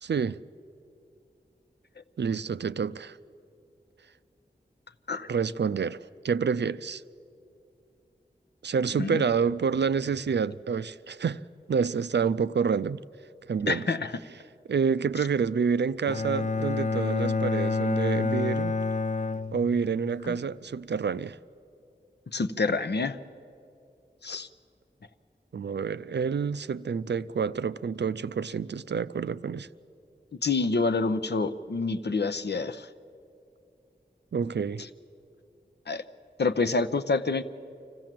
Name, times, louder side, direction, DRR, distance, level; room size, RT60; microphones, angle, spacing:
voice 1, 0.0-0.4 2.2-3.2 5.3-6.0 6.2-7.0 8.6-11.4 11.7-13.0 13.5-13.9 14.7-18.8 19.5-21.4 25.5-29.7 34.3-34.8, right 6 dB, 75° right, 0.4 m, -28 dB
voice 2, 13.7-14.1 20.2-20.4 22.3-23.2 24.2-24.5 30.4-32.9 35.9-36.0 36.4-37.4, left 3 dB, 70° left, 0.7 m, -27 dB
Bowed string instrument, 16.1-20.2, left 3 dB, 45° left, 0.4 m, -28 dB
25.5 x 15.5 x 7.5 m
wide cardioid pair, 60°, 18 cm